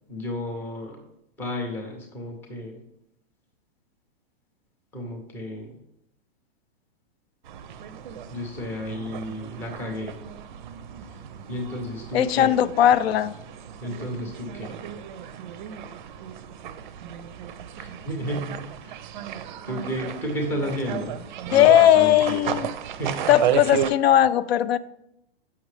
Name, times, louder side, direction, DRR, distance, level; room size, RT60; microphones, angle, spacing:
voice 1, 0.1-1.0 1.4-2.8 4.9-5.7 8.3-10.2 11.5-12.5 13.8-14.7 17.8-19.1 19.6-21.2 21.5-22.7 23.0-23.3, left 1 dB, 5° left, 1 dB, 0.5 m, -32 dB
sound 1, 7.4-23.9, right 9 dB, 50° right, 0.4 m, -34 dB
voice 2, 12.1-13.3 21.5-22.7 23.3-24.8, left 11 dB, 75° left, 16 dB, 0.5 m, -18 dB
7.2 x 5.8 x 3.2 m, 0.81 s
supercardioid pair, 170°, 31 cm